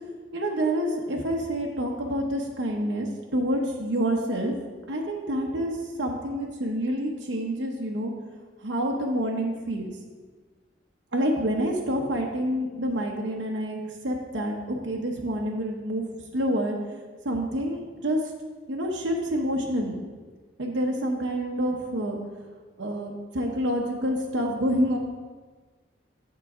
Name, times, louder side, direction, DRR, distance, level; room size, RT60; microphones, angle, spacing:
voice 1, 0.3-4.5 4.9-8.1 8.6-9.9 11.1-16.0 16.3-16.8 17.2-18.2 18.7-20.0 20.6-22.2 22.8-25.0, equal, 75° right, 0 dB, 0.8 m, -27 dB
7.4 x 3.9 x 6.0 m, 1.4 s
head